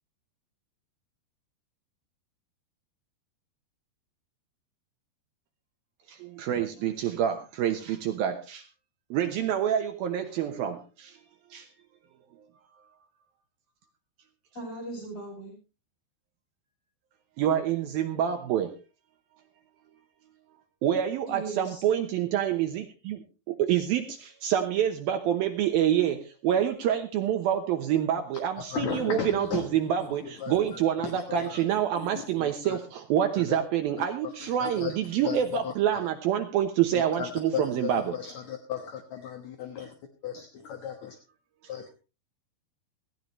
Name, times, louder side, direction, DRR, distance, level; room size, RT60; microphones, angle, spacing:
voice 1, 6.1-8.6 9.1-11.2 11.5-11.7 17.4-18.7 20.8-38.1, right 10 dB, 70° right, 6 dB, 2.5 m, -27 dB
voice 2, 14.6-15.5 21.3-21.8, right 2 dB, 30° left, -1 dB, 8.6 m, -38 dB
voice 3, 28.6-32.8 33.4-33.6 34.2-36.1 36.9-39.9 40.2-41.2 41.7-41.9, left 8 dB, 60° left, 5 dB, 1.9 m, -36 dB
17.0 x 15.5 x 3.2 m, 0.31 s
omnidirectional pair, 4.9 m